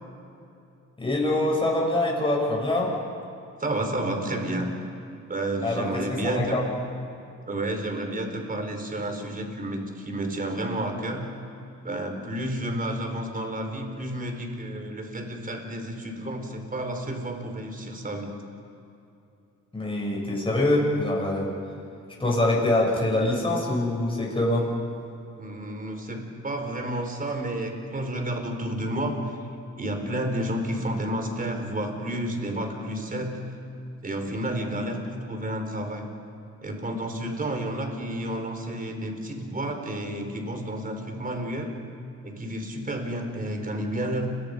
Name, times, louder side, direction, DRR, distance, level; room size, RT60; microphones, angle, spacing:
voice 1, 1.0-2.9 5.6-6.6 19.7-21.5 22.2-24.7, left 1 dB, 15° left, -3 dB, 8.0 m, -24 dB
voice 2, 3.6-4.7 5.3-6.6 7.5-11.3 11.8-18.3 25.4-29.4 29.8-33.4 34.0-36.1 36.6-41.7 42.2-44.3, right 1 dB, 30° right, 4 dB, 4.6 m, -31 dB
30.0 x 24.0 x 5.4 m, 2.7 s
cardioid pair, 90°, 30 cm